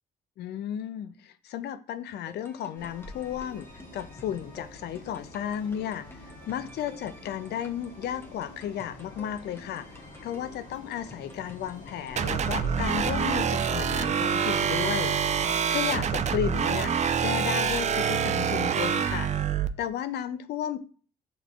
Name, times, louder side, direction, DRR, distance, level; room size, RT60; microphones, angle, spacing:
voice 1, 0.4-9.9 10.2-15.2 15.7-16.9 17.2-19.3 19.8-20.8, left 10 dB, 70° left, 0.4 m, -33 dB
sound 1, 2.3-14.6, right 1 dB, 15° left, 1.0 m, -51 dB
sound 2, 2.8-15.4, left 2 dB, 50° left, 1.8 m, -47 dB
sound 3, 12.2-19.7, right 7 dB, 40° right, 0.4 m, -26 dB
6.4 x 3.2 x 2.4 m
hypercardioid pair, 55°, 18 cm